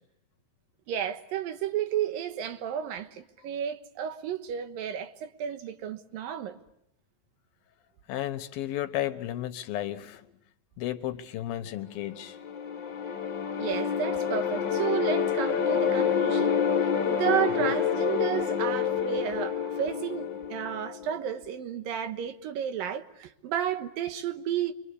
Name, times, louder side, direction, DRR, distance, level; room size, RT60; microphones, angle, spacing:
voice 1, 0.9-6.6 13.6-24.7, right 9 dB, 75° right, 3.0 m, -32 dB
voice 2, 8.1-10.3 10.8-12.4, left 13 dB, 85° left, 3.0 m, -33 dB
sound 1, 12.1-21.3, left 7 dB, 60° left, 1.1 m, -28 dB
28.0 x 24.0 x 8.4 m
omnidirectional pair, 4.1 m